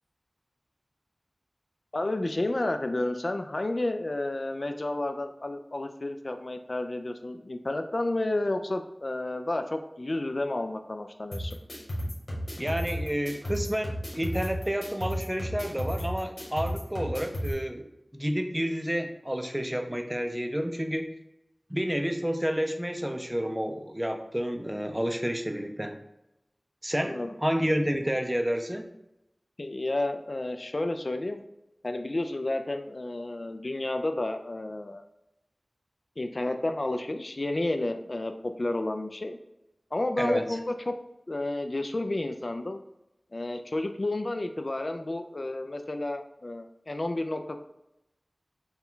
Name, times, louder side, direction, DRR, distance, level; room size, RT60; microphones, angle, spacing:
voice 1, 1.9-11.6 27.0-27.3 29.6-31.4 31.8-35.0 36.2-39.4 39.9-40.9 41.3-42.8 43.3-47.6, left 2 dB, 55° left, 7 dB, 0.3 m, -31 dB
sound 1, 11.3-17.5, equal, 80° left, 1.2 m, -34 dB
voice 2, 12.6-21.1 21.7-26.0 26.8-28.9 40.2-40.6, equal, 15° right, 6 dB, 0.4 m, -30 dB
4.4 x 2.2 x 3.7 m, 0.90 s
wide cardioid pair, 50°, 0 cm